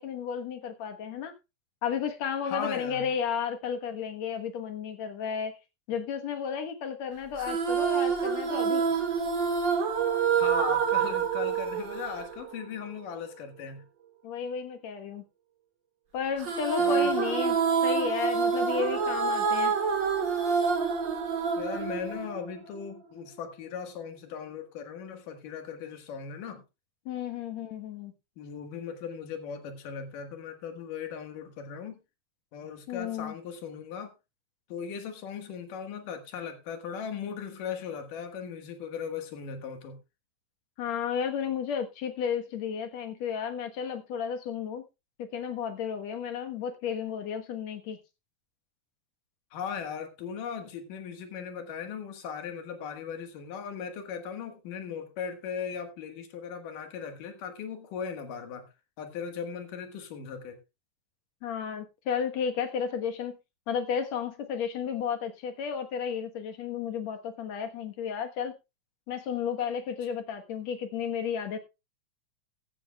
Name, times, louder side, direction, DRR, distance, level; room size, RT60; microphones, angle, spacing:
voice 1, 0.0-1.3 1.8-5.5 5.9-8.8 14.2-15.2 16.1-17.6 17.8-19.8 27.1-28.1 32.9-33.3 40.8-44.8 45.2-48.0 61.4-63.4 63.7-68.5 69.1-71.6, left 7 dB, 60° left, 2.3 m, -33 dB
voice 2, 2.4-3.0 10.2-13.8 16.8-17.2 21.6-26.6 28.4-32.0 32.5-34.1 34.7-40.0 49.5-58.6 59.0-60.6, left 6 dB, 80° left, 3.2 m, -38 dB
sound 1, 7.4-12.9 16.4-22.8, right 6 dB, 40° right, 2.2 m, -27 dB
15.0 x 12.0 x 2.3 m
omnidirectional pair, 3.8 m